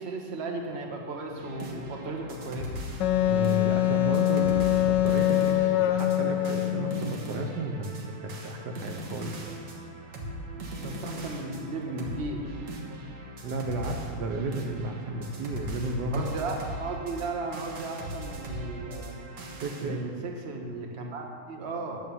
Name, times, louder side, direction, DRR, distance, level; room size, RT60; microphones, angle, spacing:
voice 1, 0.0-2.7 10.8-12.4 16.1-19.1 19.8-22.0, right 3 dB, 40° right, 2 dB, 1.3 m, -35 dB
sound 1, 1.4-19.9, equal, 90° right, 2.1 m, -39 dB
Wind instrument woodwind instrument, 3.0-7.1, left 14 dB, 75° left, 1.2 m, -24 dB
voice 2, 3.3-9.5 13.4-16.3 19.6-20.0, right 2 dB, 70° right, 1 dB, 1.4 m, -33 dB
9.9 x 7.7 x 7.0 m, 2.1 s
omnidirectional pair, 2.0 m